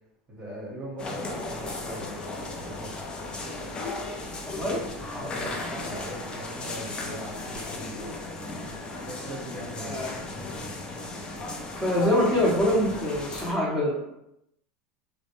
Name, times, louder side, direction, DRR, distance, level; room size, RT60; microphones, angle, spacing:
voice 1, 0.3-3.0 4.6-4.8 5.1-8.1 9.0-10.0, equal, 30° right, -5 dB, 0.9 m, -40 dB
sound 1, 1.0-13.5, left 2 dB, 25° left, 0.5 m, -36 dB
voice 2, 4.5-4.8 5.1-5.3 9.8-10.1 11.8-14.1, left 1 dB, 5° left, -10 dB, 0.8 m, -25 dB
2.1 x 2.1 x 2.9 m, 0.83 s
supercardioid pair, 110°, 4 cm